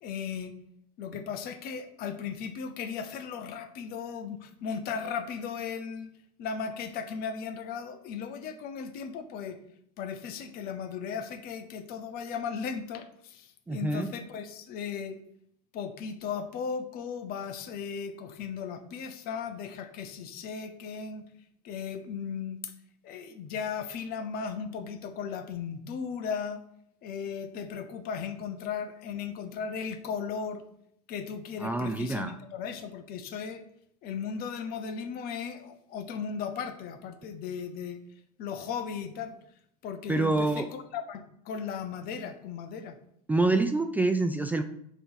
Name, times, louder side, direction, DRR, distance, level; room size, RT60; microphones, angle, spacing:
voice 1, 0.0-0.5 1.0-6.1 6.4-9.6 10.0-15.2 15.7-21.2 21.6-22.7 23.0-26.6 27.0-30.6 31.1-33.6 34.0-38.0 38.4-39.4 39.8-43.0, left 6 dB, 50° left, 9 dB, 0.9 m, -36 dB
voice 2, 13.7-14.1 31.6-32.4 40.1-40.7 43.3-44.6, right 2 dB, 10° right, 7 dB, 0.4 m, -26 dB
6.7 x 3.1 x 5.7 m, 0.72 s
hypercardioid pair, 95°, 20 cm